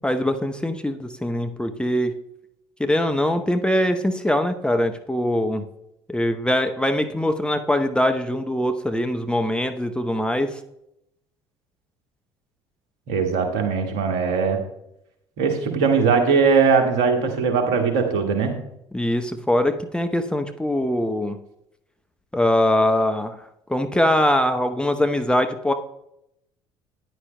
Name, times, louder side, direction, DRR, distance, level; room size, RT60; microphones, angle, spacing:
voice 1, 0.0-2.1 2.8-5.6 6.1-10.6 18.9-21.4 22.3-25.7, left 1 dB, 5° left, 6 dB, 0.8 m, -22 dB
voice 2, 13.1-14.6 15.4-18.6, right 5 dB, 65° right, 4 dB, 1.8 m, -20 dB
13.5 x 9.9 x 2.2 m, 0.81 s
figure-of-eight pair, 55°, 15 cm